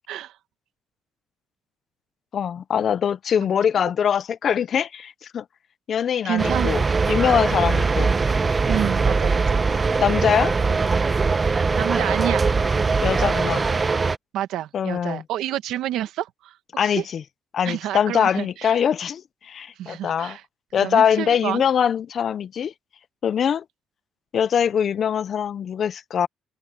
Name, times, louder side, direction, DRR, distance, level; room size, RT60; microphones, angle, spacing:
voice 1, 0.1-0.4 3.4-3.5 3.8-3.9 6.2-6.8 8.6-9.6 11.4-12.5 14.3-17.0 17.6-18.8 19.7-20.4 20.8-21.6, right 12 dB, 90° right, 1.5 m, -29 dB
voice 2, 2.3-5.4 5.9-8.1 10.0-10.5 13.0-13.7 14.7-15.2 16.8-17.2 17.5-20.4 20.7-22.7 23.2-23.6 24.3-26.3, left 8 dB, 55° left, 0.7 m, -23 dB
sound 1, 6.4-14.2, right 4 dB, 30° right, 1.0 m, -21 dB
cardioid pair, 90°, 0 cm